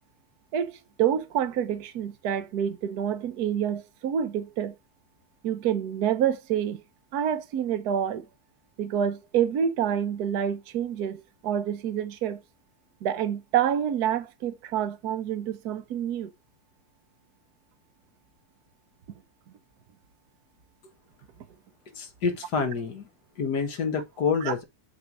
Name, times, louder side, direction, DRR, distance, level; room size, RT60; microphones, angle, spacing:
voice 1, 0.5-4.7 5.4-6.8 7.1-8.3 8.8-12.4 13.0-16.3 24.4-24.5, right 9 dB, 60° right, 1.3 m, -27 dB
voice 2, 21.9-23.1 23.4-24.6, left 5 dB, 60° left, 1.9 m, -28 dB
6.9 x 4.7 x 4.7 m
omnidirectional pair, 2.1 m